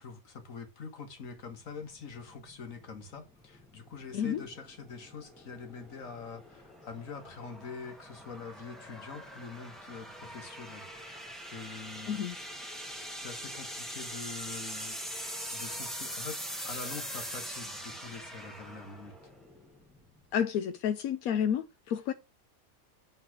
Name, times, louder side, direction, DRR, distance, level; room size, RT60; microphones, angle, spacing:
voice 1, 0.0-12.2 13.1-19.3, left 5 dB, 65° left, 1.9 m, -45 dB
sound 1, 1.2-20.3, equal, ahead, 1.1 m, -43 dB
voice 2, 20.3-22.1, left 8 dB, 85° left, 1.1 m, -30 dB
8.4 x 4.2 x 5.9 m
omnidirectional pair, 1.5 m